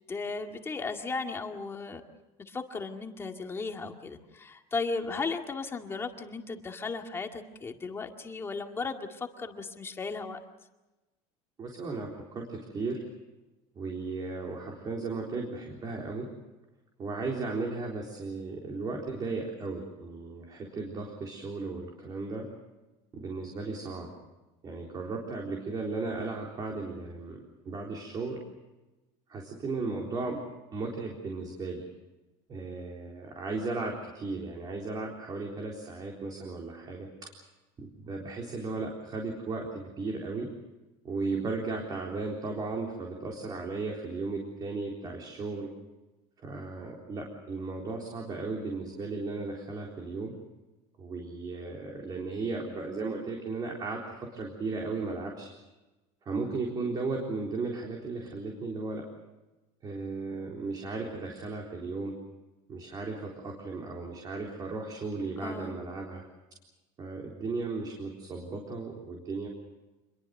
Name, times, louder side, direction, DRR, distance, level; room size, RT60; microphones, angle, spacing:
voice 1, 0.1-2.0 2.4-10.4 65.4-65.8, left 4 dB, 20° left, 4 dB, 2.1 m, -36 dB
voice 2, 11.6-13.0 13.8-16.3 17.0-22.5 23.1-24.1 24.6-27.4 27.7-28.4 29.3-30.4 30.7-31.8 32.5-37.1 37.8-40.5 41.0-45.7 46.4-50.3 51.0-55.5 56.3-59.0 59.8-62.2 62.7-66.2 67.0-69.5, right 3 dB, 30° right, 0 dB, 3.9 m, -35 dB
27.5 x 22.0 x 6.6 m, 1.1 s
cardioid pair, 150°, 14 cm